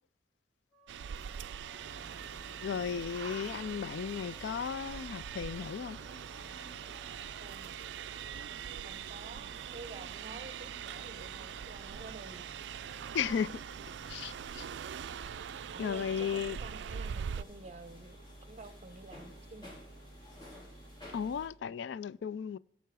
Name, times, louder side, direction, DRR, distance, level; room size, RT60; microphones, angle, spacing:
Wind instrument woodwind instrument, 0.7-7.2, left 1 dB, 5° right, 1.4 m, -60 dB
sound 1, 0.9-17.4, right 8 dB, 75° right, 0.3 m, -43 dB
sound 2, 1.8-21.5, equal, 25° left, 4.4 m, -52 dB
voice 1, 2.6-6.0 13.1-13.5 14.1-14.7 15.8-16.6 21.1-22.6, left 7 dB, 75° left, 0.3 m, -35 dB
voice 2, 7.4-7.8 8.8-12.5 15.7-19.7, right 3 dB, 35° right, 0.8 m, -50 dB
16.5 x 6.9 x 4.7 m
head